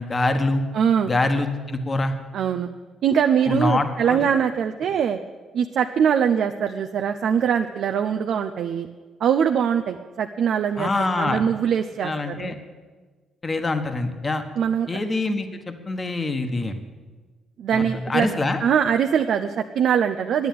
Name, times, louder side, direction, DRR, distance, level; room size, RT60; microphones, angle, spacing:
voice 1, 0.0-0.6 1.1-2.1 3.5-4.3 10.8-11.4 12.0-12.6 13.4-14.4 14.9-16.8 17.7-18.6, left 2 dB, 30° left, 7 dB, 1.3 m, -25 dB
voice 2, 0.7-1.1 2.3-2.7 3.0-5.2 5.5-8.9 9.2-12.6 14.6-14.9 17.6-18.3 18.6-20.5, right 8 dB, 70° right, 6 dB, 0.5 m, -22 dB
10.0 x 9.5 x 9.3 m, 1.4 s
cardioid pair, 90°, 0 cm